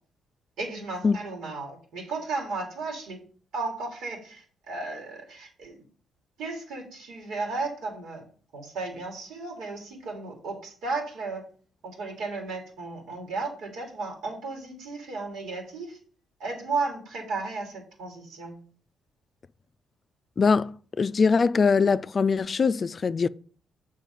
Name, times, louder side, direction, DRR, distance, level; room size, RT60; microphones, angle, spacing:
voice 1, 0.6-3.2 3.5-5.8 6.4-8.2 8.5-11.4 11.8-16.0 16.4-18.6, right 3 dB, 80° right, 3.0 m, -34 dB
voice 2, 20.4-23.3, left 5 dB, 40° left, 0.3 m, -22 dB
7.4 x 4.9 x 5.5 m
cardioid pair, 90°, 0 cm